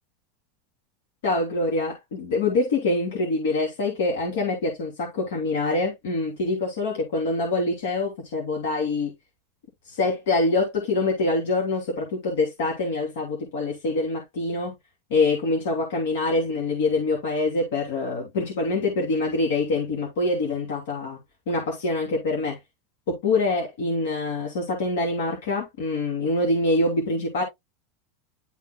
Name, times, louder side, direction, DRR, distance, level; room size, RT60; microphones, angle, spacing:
voice 1, 1.2-9.1 9.9-14.7 15.1-21.2 21.5-22.6 23.1-27.4, left 2 dB, 65° left, 2.9 m, -25 dB
11.5 x 4.4 x 2.2 m
supercardioid pair, 180°, 0 cm